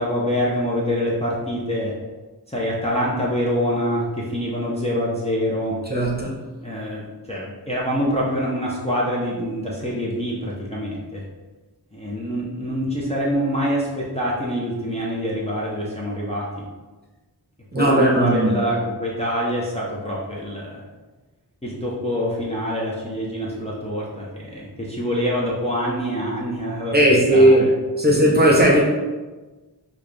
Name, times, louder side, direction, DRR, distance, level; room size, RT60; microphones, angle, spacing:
voice 1, 0.0-1.9 2.5-5.8 6.6-11.2 11.9-16.6 17.8-20.8 21.6-27.0 27.3-27.7, equal, 15° left, -6 dB, 0.7 m, -25 dB
voice 2, 5.9-6.4 17.7-18.6 26.9-27.6 28.0-28.8, right 1 dB, 25° right, -2 dB, 0.9 m, -16 dB
4.0 x 2.3 x 3.3 m, 1.2 s
wide cardioid pair, 55°, 41 cm